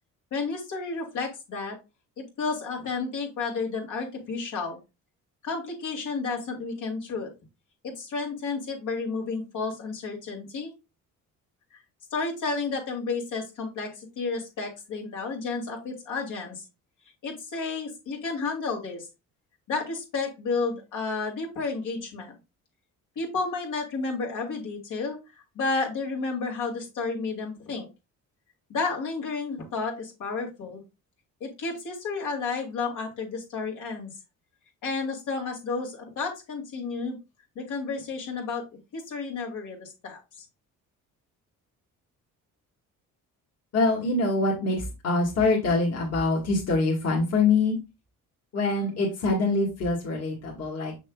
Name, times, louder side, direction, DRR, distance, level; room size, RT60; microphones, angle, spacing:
voice 1, 0.3-1.8 2.2-4.8 5.4-7.3 7.8-10.7 11.7-11.8 12.1-16.6 17.2-19.1 19.7-22.3 23.2-25.2 25.5-27.9 28.7-30.8 31.4-34.1 34.8-37.2 37.5-38.6 38.9-40.4 44.6-44.7, left 4 dB, 70° left, -1 dB, 2.6 m, -31 dB
voice 2, 43.7-47.8 48.5-50.9, left 3 dB, 50° left, -2 dB, 2.1 m, -24 dB
6.8 x 6.2 x 2.4 m, 0.27 s
cardioid pair, 135°, 32 cm